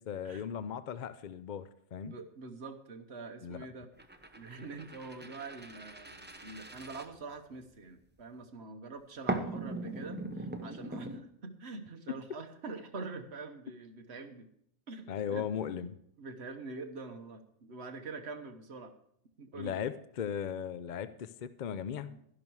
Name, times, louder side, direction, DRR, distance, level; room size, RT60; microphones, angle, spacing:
voice 1, 0.0-2.1 3.4-3.7 15.1-16.0 19.5-22.2, left 8 dB, 55° left, 13 dB, 0.5 m, -37 dB
voice 2, 2.0-3.9 4.3-14.5 14.9-15.9 16.2-18.9 19.4-19.9 22.0-22.2, right 3 dB, 55° right, 6 dB, 1.4 m, -45 dB
sound 1, 4.0-7.8 9.3-11.2, right 2 dB, 10° right, 0.6 m, -40 dB
12.5 x 11.0 x 4.7 m, 0.71 s
omnidirectional pair, 1.3 m